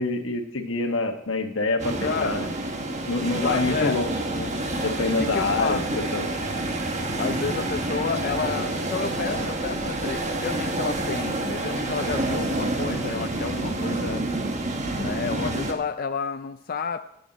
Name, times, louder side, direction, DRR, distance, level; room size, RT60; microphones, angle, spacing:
voice 1, 0.0-2.5 3.1-4.5 4.8-6.3, left 3 dB, 85° left, 5 dB, 1.4 m, -26 dB
sound 1, 1.8-15.7, right 2 dB, 35° right, 1.3 m, -28 dB
voice 2, 2.0-2.6 3.3-4.0 5.2-6.0 7.2-14.3 14.9-17.0, left 5 dB, 45° left, 8 dB, 0.4 m, -30 dB
14.0 x 9.4 x 4.1 m, 0.72 s
head